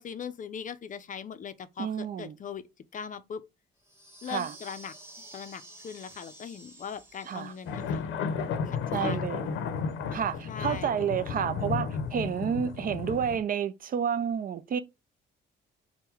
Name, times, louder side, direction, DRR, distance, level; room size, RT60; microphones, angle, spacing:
voice 1, 0.0-3.5 4.2-4.9 5.3-8.0 8.7-9.4 10.5-11.0, left 7 dB, 40° left, 0.5 m, -40 dB
voice 2, 1.8-2.3 4.3-4.5 7.3-7.5 8.9-9.5 10.1-14.8, right 8 dB, 45° right, 0.4 m, -30 dB
sound 1, 3.8-7.9, right 1 dB, 10° right, 1.3 m, -50 dB
compressed thunder clap, 7.7-13.4, left 6 dB, 80° left, 0.7 m, -33 dB
3.7 x 2.2 x 4.4 m
cardioid pair, 90°, 20 cm